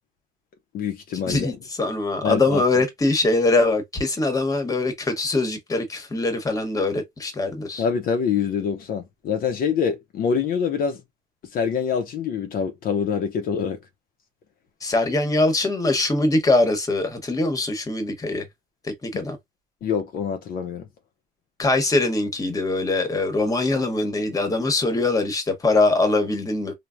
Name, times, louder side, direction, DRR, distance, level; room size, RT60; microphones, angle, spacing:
voice 1, 0.7-1.5 2.2-2.6 7.8-11.0 11.5-13.8 19.8-20.8, left 7 dB, 60° left, 0.5 m, -25 dB
voice 2, 1.3-7.8 14.8-18.5 18.8-19.4 21.6-26.7, left 2 dB, 20° left, 0.9 m, -22 dB
3.2 x 2.0 x 2.4 m
cardioid pair, 110°, 17 cm